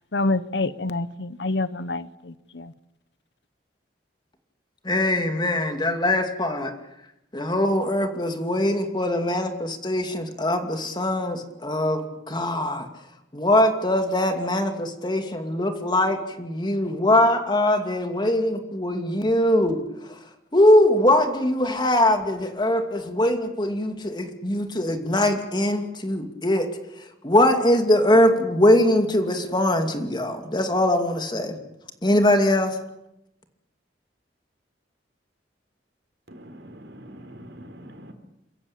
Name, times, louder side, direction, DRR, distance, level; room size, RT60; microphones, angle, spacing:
voice 1, 0.1-2.7, left 2 dB, 70° left, 16 dB, 0.9 m, -27 dB
voice 2, 4.8-6.7 7.3-12.0 12.3-12.9 13.3-19.8 20.5-26.7 27.2-31.6 32.0-32.8, left 1 dB, 25° left, 6 dB, 2.5 m, -22 dB
voice 3, 36.3-38.1, equal, 75° right, 6 dB, 4.4 m, -43 dB
28.5 x 15.0 x 8.7 m, 0.87 s
head